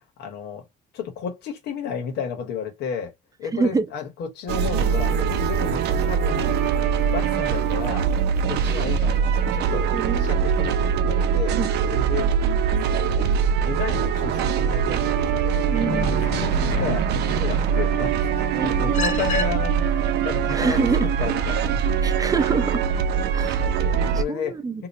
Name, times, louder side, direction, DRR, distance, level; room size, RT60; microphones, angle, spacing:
voice 1, 0.2-0.7 0.9-3.1 3.4-6.6 7.1-8.1 8.5-11.6 11.9-12.3 12.7-12.8 13.1-13.3 13.6-15.7 16.0-18.1 18.6-21.8 22.3-22.4 23.8-24.9, left 7 dB, 75° left, 1.3 m, -33 dB
voice 2, 3.5-3.8 9.9-10.5 11.6-11.7 15.7-16.2 18.5-19.3 20.5-21.1 22.0-22.8 23.3-23.6 24.3-24.8, right 4 dB, 20° right, 0.6 m, -26 dB
sound 1, 4.5-24.2, right 7 dB, 80° right, 0.6 m, -22 dB
sound 2, 15.7-17.6 18.9-19.4, left 4 dB, 45° left, 0.6 m, -29 dB
3.0 x 2.1 x 4.1 m
cardioid pair, 110°, 17 cm